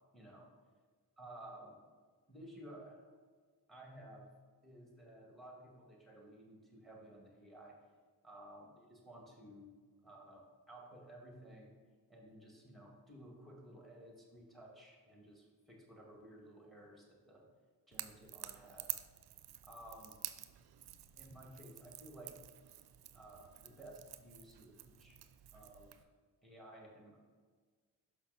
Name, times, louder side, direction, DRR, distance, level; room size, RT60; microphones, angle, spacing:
voice 1, 0.1-0.5 1.2-1.8 2.3-3.1 3.7-4.3 4.6-7.8 8.2-9.7 10.0-11.7 12.1-17.5 17.9-19.0 19.6-20.2 21.1-22.4 23.1-25.2 25.5-26.1 26.4-27.2, right 1 dB, ahead, -1 dB, 2.1 m, -55 dB
Crackle / Crack, 17.9-26.0, right 12 dB, 55° right, 0.5 m, -49 dB
6.1 x 5.6 x 4.1 m, 1.5 s
supercardioid pair, 50°, 45 cm